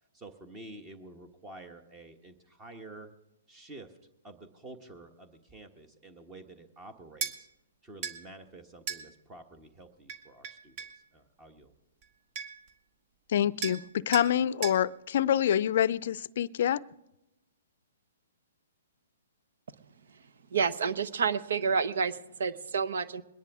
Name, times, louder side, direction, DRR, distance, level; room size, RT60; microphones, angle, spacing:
voice 1, 0.1-3.1 3.5-4.0 4.2-7.5 7.8-11.7, right 2 dB, 20° right, 7 dB, 1.2 m, -49 dB
sound 1, 7.2-7.4 8.0-8.2 8.9-9.0 10.1-11.0 12.0-12.1 12.4-12.7 13.6-13.8 14.1-14.3 14.6-14.8, right 7 dB, 40° right, 1.4 m, -36 dB
voice 2, 13.3-16.8, left 10 dB, 60° left, 20 dB, 0.5 m, -26 dB
voice 3, 20.5-23.2, right 5 dB, 70° right, 13 dB, 0.9 m, -29 dB
22.5 x 10.5 x 3.6 m, 0.91 s
hypercardioid pair, 140°, 0 cm